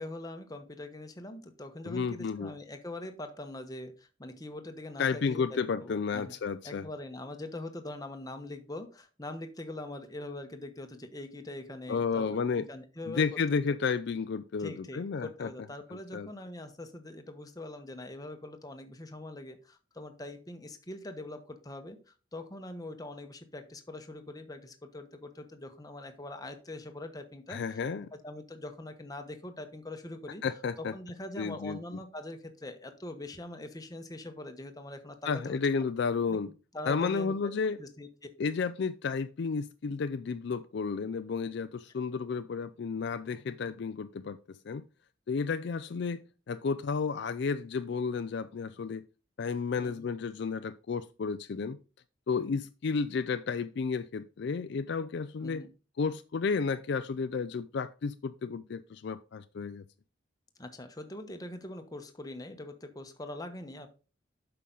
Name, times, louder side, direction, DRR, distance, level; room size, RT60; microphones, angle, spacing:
voice 1, 0.0-6.3 6.6-13.4 14.6-27.8 28.2-30.4 30.8-35.6 36.3-36.4 36.7-37.5 37.8-38.1 49.8-50.1 55.4-55.7 60.6-63.9, left 1 dB, 20° left, 1.0 m, -43 dB
voice 2, 1.9-2.5 5.0-6.9 11.9-12.7 13.1-15.5 15.9-16.3 27.5-28.1 30.4-30.9 31.4-31.8 35.2-36.5 36.9-37.8 38.4-44.8 45.3-49.0 49.4-51.8 52.3-55.6 56.0-59.8, left 5 dB, 60° left, 0.4 m, -32 dB
8.4 x 5.7 x 3.8 m
head